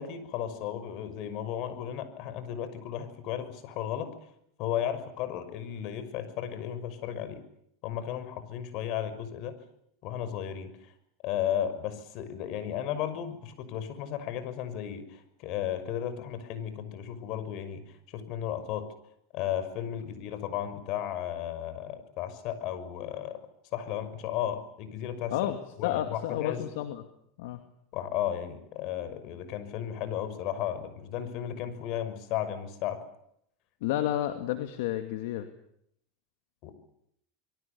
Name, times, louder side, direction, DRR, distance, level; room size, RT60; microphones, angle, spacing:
voice 1, 0.0-4.1 4.6-7.4 7.8-9.5 10.0-10.9 11.2-18.9 19.3-23.4 23.7-25.3 25.8-26.6 27.9-33.0 36.6-36.8, left 10 dB, 55° left, 12 dB, 6.1 m, -34 dB
voice 2, 25.8-27.0 27.4-27.6 33.8-35.5, left 13 dB, 70° left, 8 dB, 2.5 m, -31 dB
27.0 x 23.0 x 7.0 m, 0.72 s
supercardioid pair, 110°, 0 cm